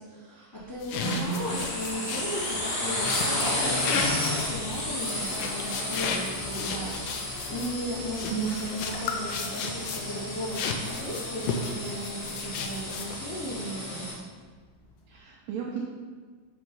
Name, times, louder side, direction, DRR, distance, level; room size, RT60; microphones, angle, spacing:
voice 1, 0.0-14.1, equal, 30° left, -10 dB, 0.3 m, -36 dB
sound 1, 0.5-15.2, left 2 dB, 70° left, 2.2 m, -50 dB
sound 2, 0.8-10.2 10.5-13.3, left 5 dB, 90° left, 2.3 m, -34 dB
sound 3, 0.9-14.1, left 1 dB, 50° left, 1.2 m, -33 dB
voice 2, 1.0-1.5 8.3-8.6 15.1-15.8, right 8 dB, 75° right, -2 dB, 1.7 m, -33 dB
8.0 x 3.0 x 5.3 m, 1.5 s
omnidirectional pair, 3.8 m